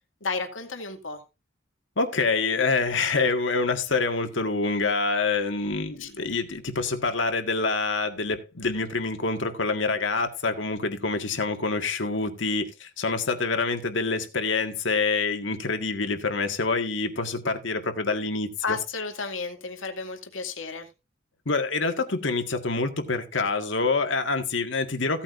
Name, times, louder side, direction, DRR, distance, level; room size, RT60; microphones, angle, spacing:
voice 1, 0.2-1.2 6.0-6.1 18.6-20.9, left 4 dB, 85° left, 2.3 m, -32 dB
voice 2, 2.0-18.8 21.5-25.2, left 3 dB, 70° left, 1.8 m, -26 dB
16.5 x 8.8 x 2.6 m
head